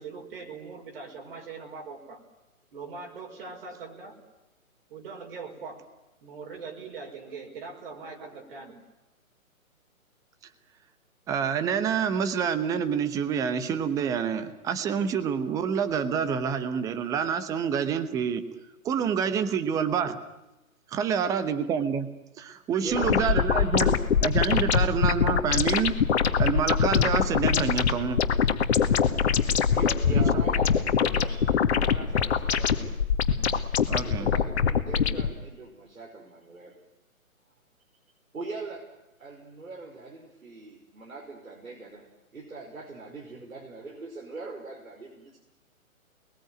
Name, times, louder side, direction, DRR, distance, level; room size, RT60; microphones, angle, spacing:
voice 1, 0.0-2.2 2.7-4.2 4.9-5.8 6.2-8.8, right 4 dB, 40° right, 2 dB, 5.4 m, -41 dB
voice 2, 11.3-18.4 18.8-20.2 20.9-26.0 26.4-28.2 30.1-30.4 33.9-34.3, right 7 dB, 10° right, 12 dB, 0.9 m, -27 dB
voice 3, 22.8-23.7 29.7-32.9 34.0-36.8 38.3-38.9 39.2-42.1 42.3-45.4, right 3 dB, 75° right, 0 dB, 5.4 m, -41 dB
sound 1, 22.9-35.3, left 7 dB, 50° left, 1.9 m, -24 dB
29.5 x 21.5 x 9.3 m, 1.0 s
figure-of-eight pair, 135°, 42 cm